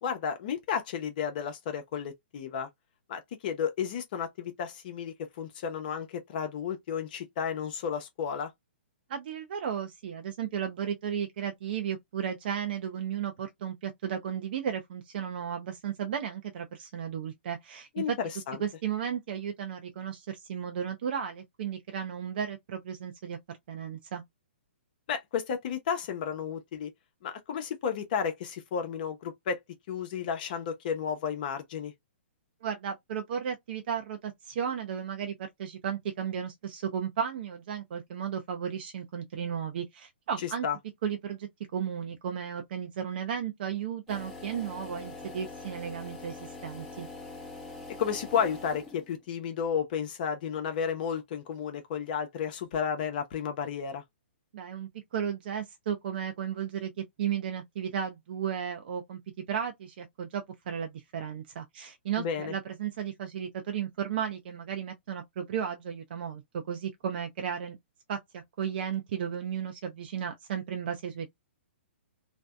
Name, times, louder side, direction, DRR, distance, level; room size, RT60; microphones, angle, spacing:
voice 1, 0.0-2.7 3.1-8.5 18.0-18.6 25.1-26.9 27.2-29.6 29.9-31.9 40.4-40.8 48.0-54.0 62.2-62.5, left 7 dB, 50° left, 0.6 m, -32 dB
voice 2, 9.1-18.2 18.6-23.4 23.7-24.2 32.6-40.7 41.0-47.1 54.5-59.2 59.5-67.8 68.1-71.3, right 8 dB, 55° right, 0.5 m, -34 dB
sound 1, 44.1-49.2, left 3 dB, ahead, 0.8 m, -44 dB
2.6 x 2.1 x 2.2 m
hypercardioid pair, 130°, 6 cm